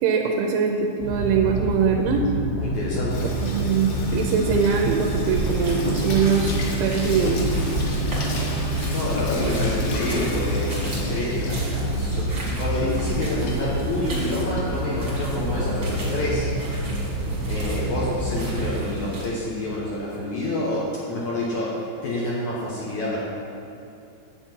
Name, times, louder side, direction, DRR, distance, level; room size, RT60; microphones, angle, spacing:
voice 1, 0.0-2.2 3.4-6.5 6.8-7.4, right 6 dB, 80° right, 2 dB, 2.9 m, -22 dB
sound 1, 1.0-18.8, right 1 dB, 40° left, 1.6 m, -28 dB
voice 2, 2.5-3.3 8.9-10.7 11.1-16.5 17.4-23.2, left 1 dB, 85° left, -7 dB, 1.6 m, -28 dB
Water tap faucet / Sink (filling or washing), 3.1-20.6, left 2 dB, 70° left, 2.5 m, -35 dB
sound 2, 5.0-19.2, right 1 dB, 40° right, 1.2 m, -34 dB
10.0 x 7.6 x 4.5 m, 2.7 s
omnidirectional pair, 5.4 m